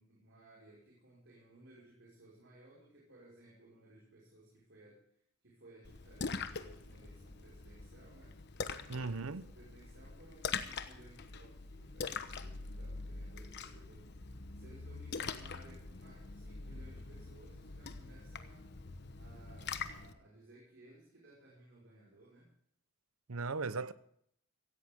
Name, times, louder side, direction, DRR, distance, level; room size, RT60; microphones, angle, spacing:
voice 1, 0.0-5.0 5.4-8.4 8.8-14.1 14.5-18.7 19.1-22.5, right 1 dB, 60° right, 5.6 m, -60 dB
Splash splatter, 5.8-20.1, left 5 dB, 50° left, 1.1 m, -44 dB
voice 2, 8.9-9.4 23.3-23.9, right 4 dB, 80° right, 0.9 m, -37 dB
16.5 x 16.5 x 3.7 m
head